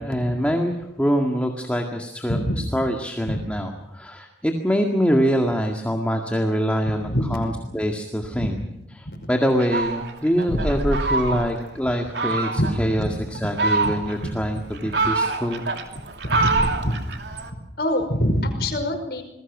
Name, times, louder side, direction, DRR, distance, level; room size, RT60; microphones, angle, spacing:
voice 1, 0.0-8.6 8.9-15.6, equal, 5° left, 2 dB, 1.9 m, -24 dB
voice 2, 7.0-7.4 8.4-8.5 9.1-9.2 10.5-10.6 12.6-12.7 13.0-13.1 13.8-13.9 14.2-14.4 14.8-15.0 16.3-16.9 17.5-19.2, equal, 60° left, 6 dB, 5.5 m, -25 dB
Fowl, 9.6-11.7 12.1-12.8 13.3-14.3 14.7-17.5, right 3 dB, 75° right, 2.9 m, -25 dB
27.5 x 21.0 x 6.1 m, 0.89 s
head